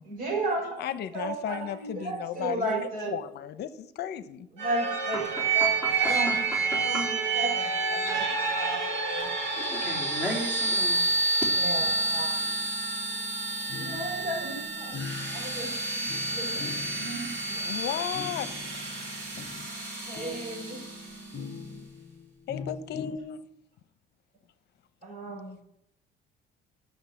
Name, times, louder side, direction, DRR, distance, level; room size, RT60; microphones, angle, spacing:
voice 1, 0.0-0.9 1.1-3.1 4.5-6.4 6.7-8.3 8.6-9.6 11.5-12.4 13.8-15.1 15.3-16.7 16.9-17.7 20.0-20.8 25.0-25.6, right 2 dB, 45° right, 0 dB, 4.9 m, -34 dB
voice 2, 0.8-2.7 3.1-4.5 17.6-18.5 18.7-18.9 19.4-19.5 22.5-23.4, left 10 dB, 60° left, 13 dB, 0.9 m, -35 dB
sound 1, 4.6-21.3, right 3 dB, 80° right, 4.1 m, -29 dB
voice 3, 5.1-7.1 9.6-11.1, left 1 dB, 10° right, -1 dB, 3.1 m, -36 dB
sound 2, 11.8-21.8, right 3 dB, 30° right, 1.5 m, -48 dB
sound 3, 13.7-19.8 20.2-23.2, left 5 dB, 30° left, 0.8 m, -43 dB
11.0 x 6.5 x 7.9 m, 0.78 s
cardioid pair, 135°, 19 cm